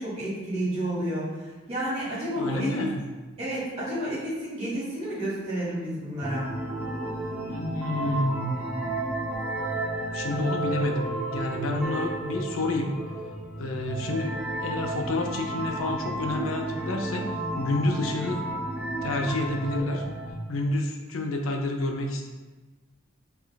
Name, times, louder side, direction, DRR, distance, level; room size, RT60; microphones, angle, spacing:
voice 1, 0.0-2.8 3.4-6.6, right 1 dB, 30° right, -10 dB, 1.5 m, -31 dB
voice 2, 2.3-3.0 7.5-8.6 10.1-12.9 13.6-18.4 19.0-20.0 20.5-22.3, left 2 dB, 80° left, 2 dB, 0.5 m, -29 dB
sound 1, 6.2-20.3, right 1 dB, 5° right, 0.5 m, -32 dB
5.3 x 3.4 x 2.2 m, 1.2 s
head